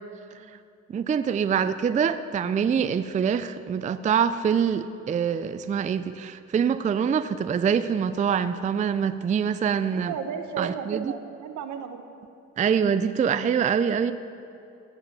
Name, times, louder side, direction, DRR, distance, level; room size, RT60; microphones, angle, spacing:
voice 1, 0.9-10.1 10.6-11.1 12.6-14.1, right 7 dB, 25° right, 12 dB, 0.4 m, -25 dB
voice 2, 9.9-12.1, right 7 dB, 75° right, 7 dB, 1.0 m, -34 dB
17.0 x 5.6 x 6.9 m, 2.7 s
cardioid pair, 90°, 30 cm